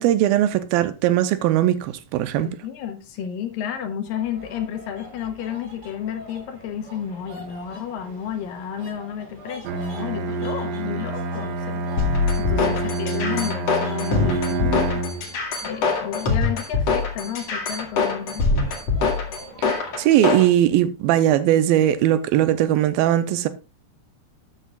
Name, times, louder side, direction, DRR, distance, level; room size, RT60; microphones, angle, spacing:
voice 1, 0.0-2.5 19.6-23.5, right 12 dB, 85° right, 2.5 m, -19 dB
voice 2, 2.4-12.1 12.4-18.5, left 9 dB, 75° left, 2.7 m, -32 dB
sound 1, 4.0-20.1, equal, 25° right, 4.4 m, -44 dB
Bowed string instrument, 9.6-15.3, right 3 dB, 65° right, 1.7 m, -27 dB
sound 2, 12.0-20.5, left 4 dB, 50° left, 2.8 m, -23 dB
13.0 x 8.4 x 2.4 m
omnidirectional pair, 4.2 m